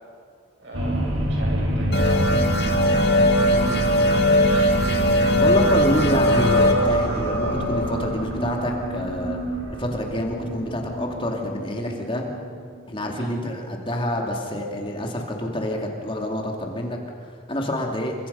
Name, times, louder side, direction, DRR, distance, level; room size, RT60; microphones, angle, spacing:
voice 1, 0.6-5.4 13.2-13.4, right 1 dB, 60° right, -1 dB, 7.7 m, -39 dB
sound 1, 0.7-13.6, right 1 dB, 85° right, 5.2 m, -28 dB
sound 2, 1.9-9.2, equal, 50° left, 2.2 m, -21 dB
voice 2, 5.4-9.4 9.8-12.3 12.9-17.0 17.5-18.1, left 1 dB, 25° left, 1 dB, 2.7 m, -27 dB
29.5 x 25.0 x 5.7 m, 2.3 s
head